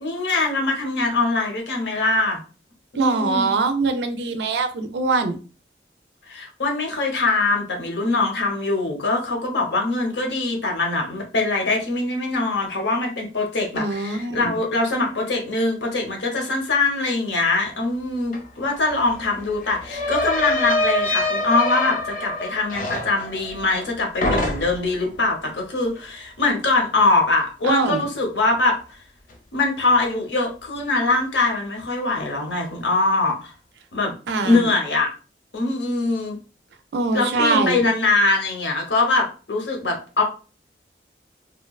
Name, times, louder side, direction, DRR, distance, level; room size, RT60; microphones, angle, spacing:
voice 1, 0.0-2.4 2.9-3.5 6.3-29.0 29.5-33.5 33.9-34.1 34.4-35.1 35.5-36.4 37.1-40.2, left 3 dB, 80° left, 1 dB, 0.7 m, -22 dB
voice 2, 2.9-5.4 13.8-14.5 27.6-28.0 34.3-34.6 36.9-37.8, right 3 dB, 75° right, 8 dB, 0.4 m, -23 dB
sound 1, 18.3-18.4 18.7-23.9 24.2-25.0, left 2 dB, 45° left, 0.4 m, -25 dB
2.8 x 2.2 x 2.3 m, 0.36 s
head